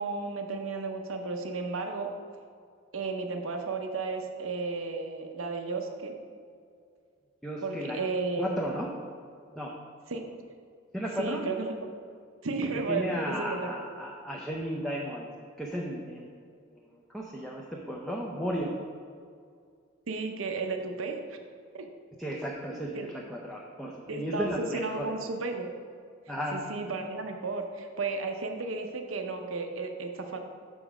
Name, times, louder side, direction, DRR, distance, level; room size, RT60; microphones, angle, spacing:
voice 1, 0.0-2.1 2.9-6.1 7.6-8.5 10.1-10.3 11.2-11.7 12.4-13.7 20.1-21.2 21.7-21.9 22.9-23.1 24.1-25.7 26.5-30.4, right 3 dB, 85° right, 4 dB, 0.7 m, -33 dB
voice 2, 7.4-8.0 8.4-8.9 9.6-9.7 10.9-11.4 12.7-15.3 15.6-16.3 16.7-18.7 22.2-25.2 26.3-26.6, equal, ahead, -2 dB, 0.5 m, -34 dB
6.3 x 5.1 x 4.9 m, 2.3 s
head